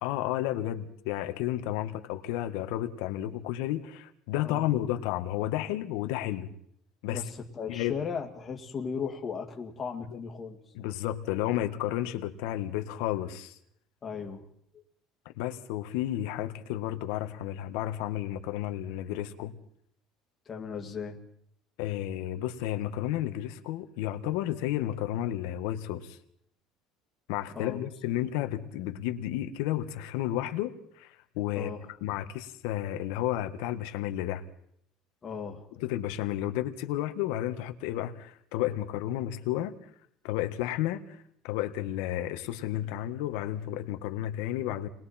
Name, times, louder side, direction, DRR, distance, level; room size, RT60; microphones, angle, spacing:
voice 1, 0.0-6.5 7.0-7.2 7.7-8.0 10.7-13.5 15.4-19.6 21.8-26.2 27.3-31.7 32.0-34.4 35.8-39.8 40.2-44.9, left 13 dB, 85° left, 1.6 m, -32 dB
voice 2, 7.1-10.6 14.0-14.4 20.5-21.2 27.5-27.9 31.5-31.8 35.2-35.7, left 6 dB, 20° left, 2.2 m, -36 dB
30.0 x 20.5 x 4.4 m
cardioid pair, 160°, 0 cm